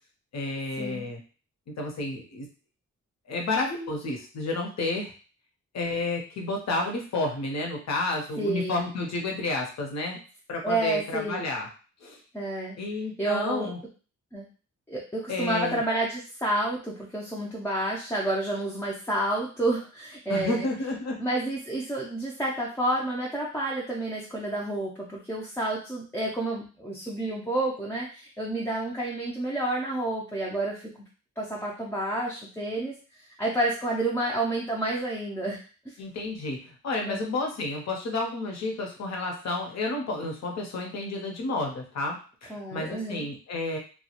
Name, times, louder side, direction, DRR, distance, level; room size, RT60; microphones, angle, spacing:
voice 1, 0.3-1.2 1.8-2.5 3.3-5.1 5.7-10.2 10.5-11.7 12.0-12.2 12.8-13.8 15.3-15.8 20.3-21.2 36.0-43.8, left 2 dB, 60° left, 1 dB, 0.7 m, -31 dB
voice 2, 8.4-8.9 10.6-11.4 12.3-12.8 13.2-13.7 14.3-14.5 14.9-20.7 21.2-30.9 31.4-32.9 33.4-35.6 35.9-36.0 37.1-37.2 42.5-43.3, right 1 dB, 10° left, -4 dB, 0.3 m, -29 dB
2.2 x 2.1 x 2.8 m, 0.37 s
wide cardioid pair, 140°, 30 cm